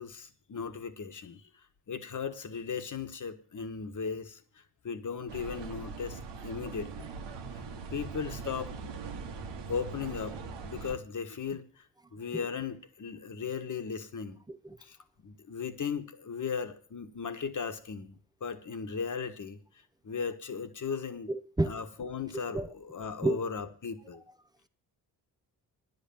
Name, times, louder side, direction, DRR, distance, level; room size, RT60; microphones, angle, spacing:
voice 1, 0.0-1.4 1.9-7.1 7.9-8.7 9.7-11.8 12.1-14.4 14.8-19.6 20.0-21.3 21.7-24.2, left 6 dB, 45° left, 1.5 m, -37 dB
sound 1, 5.3-11.0, right 5 dB, 85° right, 1.4 m, -41 dB
voice 2, 21.3-21.7 22.5-22.7 23.2-23.4, right 2 dB, 10° right, 0.7 m, -30 dB
10.0 x 8.2 x 7.1 m
cardioid pair, 65°, 41 cm